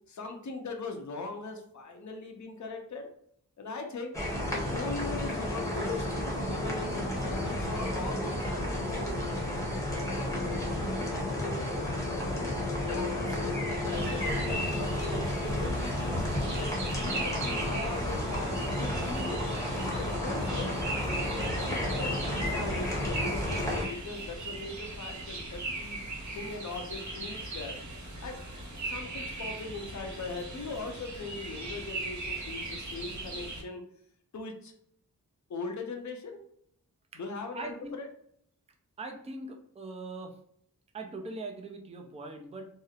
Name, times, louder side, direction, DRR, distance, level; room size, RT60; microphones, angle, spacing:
voice 1, 0.1-3.1 3.6-4.1 4.5-9.1 9.7-12.5 12.8-16.2 16.5-19.4 19.9-20.7 21.4-26.0 26.3-27.8 28.2-28.4 28.8-33.8 34.3-34.7 35.5-36.4 37.2-38.1, left 3 dB, 50° left, 4 dB, 0.5 m, -40 dB
sound 1, 4.1-23.9, left 1 dB, 10° left, 0.8 m, -32 dB
sound 2, 13.9-33.6, right 2 dB, 50° right, 0.9 m, -39 dB
voice 2, 37.5-38.0 39.0-40.4 40.9-42.7, right 2 dB, 20° right, 2 dB, 0.4 m, -41 dB
2.7 x 2.0 x 2.3 m, 0.67 s
wide cardioid pair, 65°, 38 cm